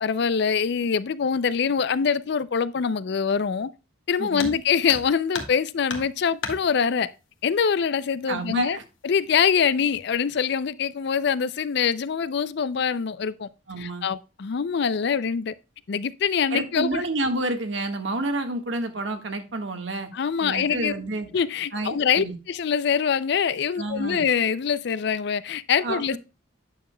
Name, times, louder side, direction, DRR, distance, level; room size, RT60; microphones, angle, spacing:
voice 1, 0.0-3.7 4.1-7.1 7.4-8.8 9.0-13.5 13.8-15.5 15.9-17.0 20.1-20.9 21.3-26.2, left 6 dB, 55° left, 0.4 m, -24 dB
voice 2, 4.2-4.5 8.3-8.8 13.7-14.0 16.5-20.1 20.4-21.3 21.7-22.3 23.8-24.2 25.8-26.2, right 2 dB, 65° right, 1.4 m, -29 dB
sound 1, 4.4-4.6 4.9-5.6 5.9-6.6 7.8-7.9 8.4-8.5 9.2-9.6 9.9-10.3, left 4 dB, 75° left, 1.5 m, -33 dB
9.3 x 6.8 x 2.2 m
head